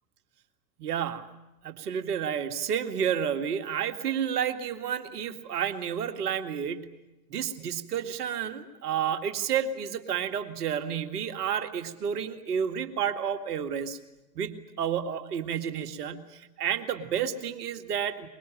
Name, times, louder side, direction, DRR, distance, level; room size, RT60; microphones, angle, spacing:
voice 1, 0.8-1.3 1.6-6.9 7.3-14.0 14.4-18.3, right 8 dB, 70° right, 7 dB, 2.3 m, -30 dB
24.5 x 22.5 x 9.0 m, 0.96 s
figure-of-eight pair, 85°, 49 cm